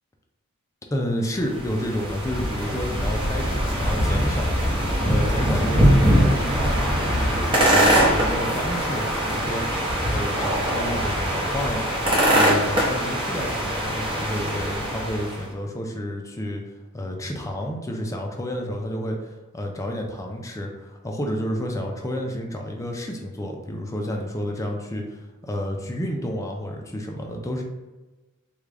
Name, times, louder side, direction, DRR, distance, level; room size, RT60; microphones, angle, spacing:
voice 1, 0.9-11.9 12.3-16.6 16.9-19.3 19.5-27.6, equal, 15° left, 1 dB, 0.4 m, -30 dB
sound 1, 1.4-15.4, equal, 25° right, 0.8 m, -22 dB
3.6 x 2.3 x 3.3 m, 1.2 s
head